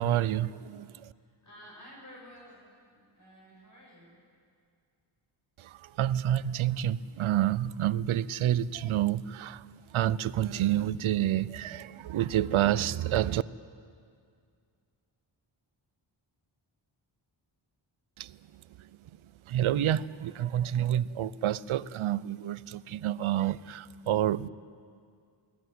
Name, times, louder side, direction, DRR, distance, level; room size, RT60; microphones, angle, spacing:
voice 1, 0.0-1.1 5.6-13.4 18.2-18.4 19.5-24.5, right 12 dB, 80° right, 19 dB, 0.6 m, -29 dB
voice 2, 1.2-4.2, equal, 35° left, -3 dB, 7.1 m, -52 dB
22.5 x 16.5 x 9.4 m, 2.2 s
wide cardioid pair, 150°, 49 cm